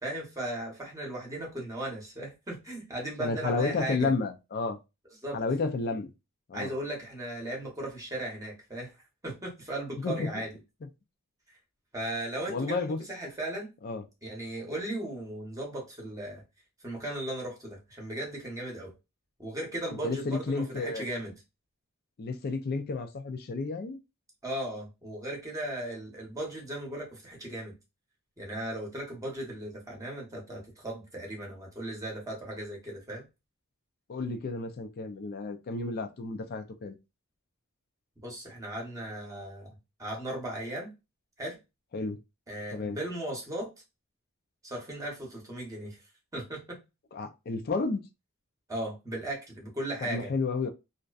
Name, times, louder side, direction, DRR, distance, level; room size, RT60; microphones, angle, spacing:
voice 1, 0.0-4.1 5.2-5.4 6.5-8.9 9.2-10.5 11.9-13.7 14.2-16.4 16.8-18.9 19.4-21.3 24.4-27.8 28.4-33.2 38.2-39.7 40.0-40.9 41.4-41.6 42.5-43.7 44.6-46.0 46.3-46.8 48.7-50.3, right 1 dB, 15° right, 0.8 m, -37 dB
voice 2, 3.2-4.8 5.3-6.1 6.5-6.7 10.0-10.4 12.5-13.0 13.8-14.0 19.9-21.1 22.2-24.0 34.1-37.0 41.9-42.2 42.7-43.0 47.1-48.0 50.0-50.7, left 3 dB, 45° left, 0.4 m, -31 dB
2.5 x 2.1 x 2.3 m
head